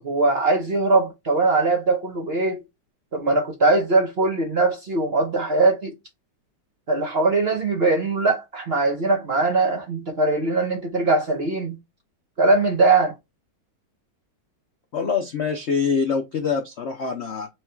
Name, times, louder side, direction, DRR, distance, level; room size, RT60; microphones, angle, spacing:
voice 1, 0.0-2.6 3.1-5.9 6.9-11.7 12.4-13.1, right 3 dB, 40° right, 0.9 m, -21 dB
voice 2, 14.9-17.5, left 5 dB, 75° left, 0.6 m, -25 dB
4.7 x 2.4 x 4.4 m
omnidirectional pair, 2.2 m